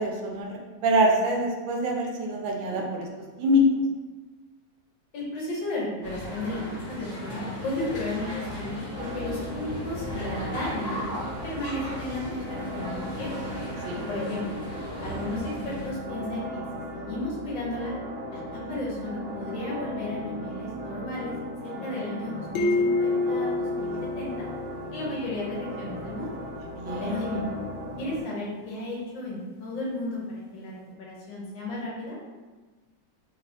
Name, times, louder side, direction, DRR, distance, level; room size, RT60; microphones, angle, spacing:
voice 1, 0.0-3.1 3.4-3.6 13.8-14.0 18.4-18.7 26.7-27.2, equal, 75° right, 0 dB, 1.3 m, -25 dB
voice 2, 5.1-6.6 6.9-11.0 11.4-13.3 13.9-14.4 15.0-16.6 16.9-17.9 18.3-18.4 18.7-21.3 21.6-24.5 24.9-26.4 27.0-27.4 28.0-30.7 31.0-32.2, left 1 dB, 70° left, -5 dB, 1.6 m, -34 dB
sound 1, 6.0-15.9, equal, 45° left, 1.8 m, -37 dB
sound 2, 8.9-28.2, left 1 dB, 40° right, 1.1 m, -37 dB
sound 3, 22.5-25.1, left 3 dB, 85° left, 1.4 m, -27 dB
3.5 x 2.9 x 2.7 m, 1.3 s
omnidirectional pair, 2.1 m